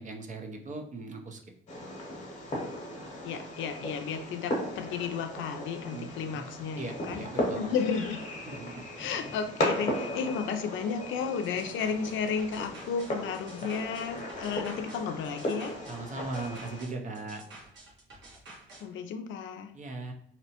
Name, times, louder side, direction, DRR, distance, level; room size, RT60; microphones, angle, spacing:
voice 1, 0.0-1.4 5.9-6.4 6.8-7.6 8.5-8.7 15.9-17.4 19.7-20.1, right 3 dB, 40° right, 3 dB, 0.5 m, -39 dB
Fireworks, 1.7-16.8, left 1 dB, 35° left, 0.9 m, -36 dB
voice 2, 3.2-7.2 7.6-8.2 9.0-15.7 18.8-19.7, left 6 dB, 75° left, 7 dB, 0.4 m, -33 dB
sound 1, 11.4-18.8, right 2 dB, 70° right, 1.0 m, -50 dB
2.7 x 2.0 x 2.8 m, 0.69 s
cardioid pair, 90°, 20 cm